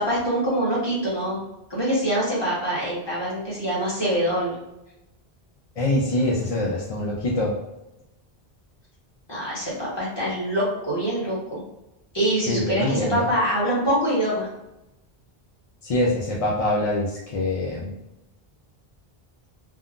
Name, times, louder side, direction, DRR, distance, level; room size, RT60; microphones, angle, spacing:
voice 1, 0.0-1.4 1.7-4.5 9.3-11.6 12.1-14.5, right 1 dB, 25° left, -7 dB, 1.1 m, -24 dB
voice 2, 5.8-7.6 12.5-13.3 15.8-17.9, left 1 dB, 50° left, -4 dB, 0.4 m, -24 dB
3.5 x 2.0 x 2.5 m, 0.93 s
omnidirectional pair, 1.0 m